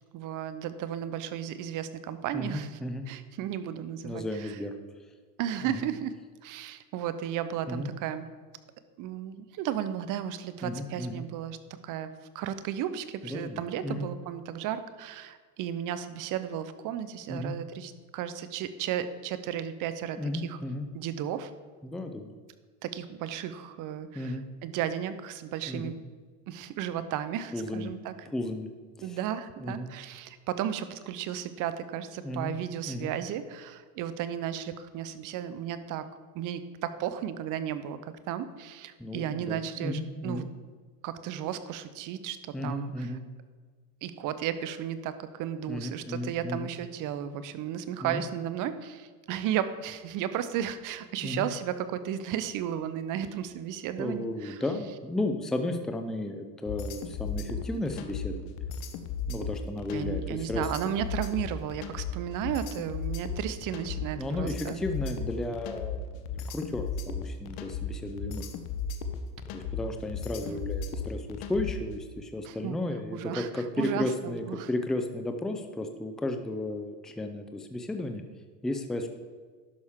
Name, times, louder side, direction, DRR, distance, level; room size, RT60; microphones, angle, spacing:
voice 1, 0.0-2.8 3.1-4.6 5.4-6.1 6.4-8.3 9.0-11.6 11.8-20.6 20.9-21.5 22.8-26.0 26.5-28.1 29.0-36.1 36.3-40.4 41.0-43.1 44.0-54.6 59.9-64.8 70.4-70.6 72.4-72.8 73.1-74.7, right 10 dB, 45° right, 12 dB, 0.7 m, -34 dB
voice 2, 2.3-3.1 4.0-4.7 5.6-5.9 7.7-7.9 10.6-11.3 13.2-14.1 17.3-17.5 20.2-20.9 21.8-22.3 24.1-24.5 25.7-25.9 27.5-27.9 28.3-28.7 29.0-29.2 29.6-29.9 32.2-32.5 32.9-33.1 39.0-40.5 42.5-43.2 45.7-46.7 48.0-48.3 51.2-51.5 54.0-58.5 59.3-60.6 64.2-68.5 69.5-78.2 78.6-79.1, left 1 dB, ahead, 6 dB, 0.4 m, -34 dB
sound 1, 56.7-71.9, left 6 dB, 50° left, 0.9 m, -35 dB
11.5 x 6.2 x 3.6 m, 1.5 s
supercardioid pair, 110°, 47 cm